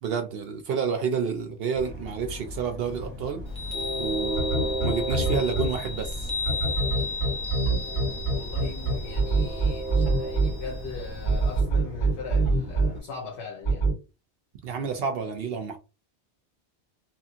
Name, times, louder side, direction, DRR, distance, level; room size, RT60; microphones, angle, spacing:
voice 1, 0.0-3.4 4.0-6.3 14.6-15.8, right 6 dB, 65° right, 0.7 m, -29 dB
Train, 1.8-13.0, right 1 dB, 10° right, 1.1 m, -36 dB
Chime, 3.5-11.6, left 3 dB, 25° left, 0.6 m, -35 dB
sound 1, 4.4-5.7 6.4-10.5 11.2-12.9 13.6-13.9, right 3 dB, 40° left, 1.7 m, -23 dB
voice 2, 8.3-13.9, left 5 dB, 75° left, 0.9 m, -40 dB
2.9 x 2.7 x 2.4 m
omnidirectional pair, 1.1 m